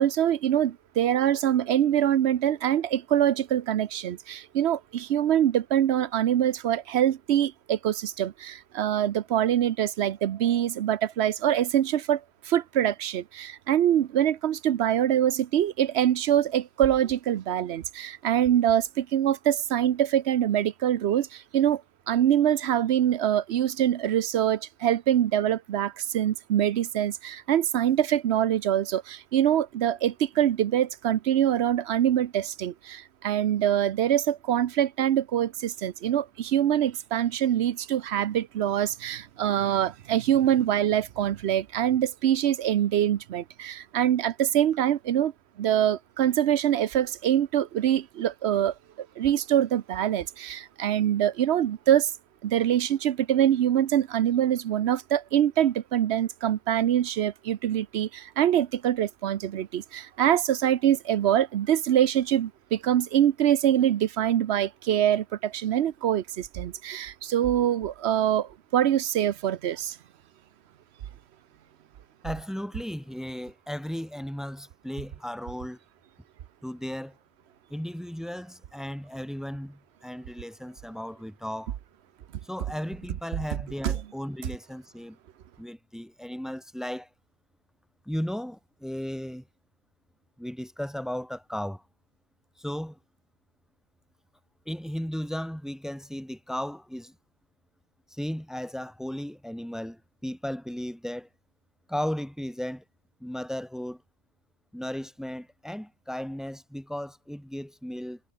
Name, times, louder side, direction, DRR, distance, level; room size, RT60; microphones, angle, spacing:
voice 1, 0.0-21.8 22.1-45.3 45.6-52.1 52.4-70.0 83.8-83.9, right 10 dB, 90° right, 1.0 m, -24 dB
voice 2, 72.2-75.8 76.6-77.2 77.7-81.8 82.4-85.2 85.6-87.1 88.0-89.4 90.4-91.8 92.6-93.0 94.6-97.1 98.2-101.3 101.9-102.8 103.2-104.0 104.7-108.2, equal, ahead, 1.5 m, -35 dB
omnidirectional pair, 1.1 m